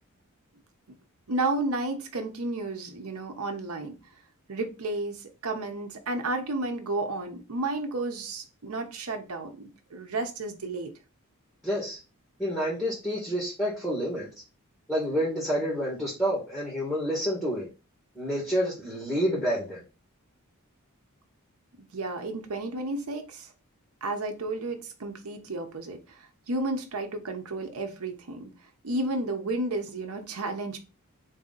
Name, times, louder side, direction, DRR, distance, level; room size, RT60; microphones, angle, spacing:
voice 1, 1.3-3.9 4.5-5.2 5.4-10.9 21.9-23.5 24.0-28.5 28.8-30.8, right 2 dB, 80° right, 0.8 m, -32 dB
voice 2, 11.6-12.0 12.4-14.3 14.9-17.7 18.1-19.8, equal, 10° left, 1.6 m, -28 dB
4.0 x 2.7 x 3.9 m
head